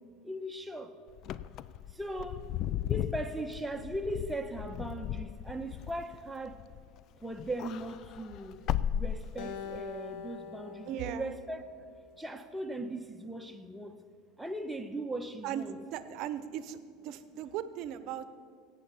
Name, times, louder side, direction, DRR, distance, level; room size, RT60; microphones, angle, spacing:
voice 1, 0.2-0.9 1.9-2.4 2.9-6.6 7.2-8.6 8.9-11.6 12.2-14.0 14.4-15.8, right 1 dB, 5° right, 4 dB, 1.1 m, -38 dB
Wind / Car, 1.2-7.0 7.3-9.8, left 10 dB, 50° left, 0.4 m, -36 dB
Acoustic guitar, 9.4-12.7, left 6 dB, 70° left, 1.1 m, -45 dB
voice 2, 10.9-11.3 15.4-16.8 17.0-18.3, right 10 dB, 60° right, 13 dB, 0.8 m, -37 dB
16.5 x 8.3 x 5.6 m, 2.1 s
supercardioid pair, 100°, 0 cm